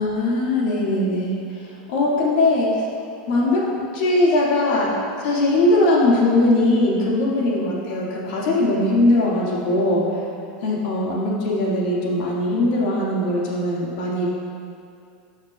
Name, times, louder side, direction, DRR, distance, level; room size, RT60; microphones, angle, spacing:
voice 1, 0.0-2.9 3.3-10.3 10.6-14.3, left 1 dB, 65° left, -4 dB, 1.8 m, -20 dB
11.5 x 5.8 x 2.3 m, 2.4 s
supercardioid pair, 135°, 5 cm